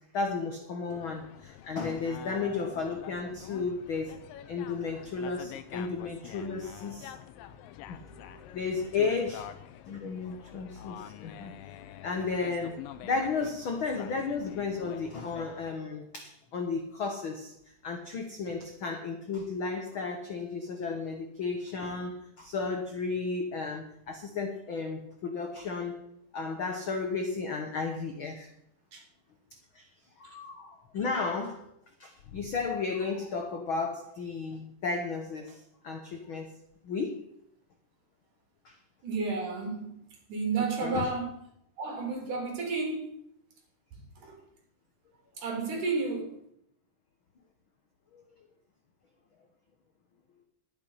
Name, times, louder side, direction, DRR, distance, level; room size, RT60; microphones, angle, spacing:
voice 1, 0.1-4.2 4.5-7.1 7.9-8.0 8.5-9.5 9.9-11.5 12.0-17.5 17.8-26.0 26.3-28.5 29.7-29.9 30.2-31.6 32.0-36.5 36.8-37.2 38.6-38.8 40.8-41.1 48.1-48.2, left 4 dB, 70° left, 4 dB, 1.2 m, -33 dB
sound 1, 0.9-15.7, left 11 dB, 90° left, 2.5 m, -47 dB
voice 2, 7.9-8.4 28.9-29.0 30.2-30.3 39.0-41.3 41.8-43.2 43.9-44.4 45.4-46.3, right 4 dB, 65° right, 1 dB, 4.4 m, -33 dB
11.5 x 10.5 x 5.6 m, 0.72 s
omnidirectional pair, 4.0 m